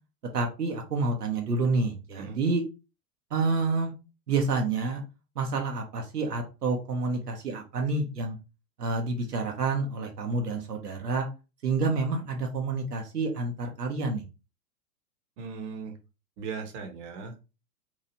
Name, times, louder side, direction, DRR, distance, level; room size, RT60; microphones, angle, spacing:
voice 1, 0.3-2.6 3.3-3.9 4.3-5.0 5.4-8.4 8.8-11.3 11.6-14.2, right 3 dB, 80° right, 2 dB, 0.8 m, -28 dB
voice 2, 15.4-16.0 16.4-17.4, right 5 dB, 50° right, 5 dB, 0.9 m, -38 dB
2.9 x 2.4 x 2.7 m, 0.30 s
figure-of-eight pair, 95°, 46 cm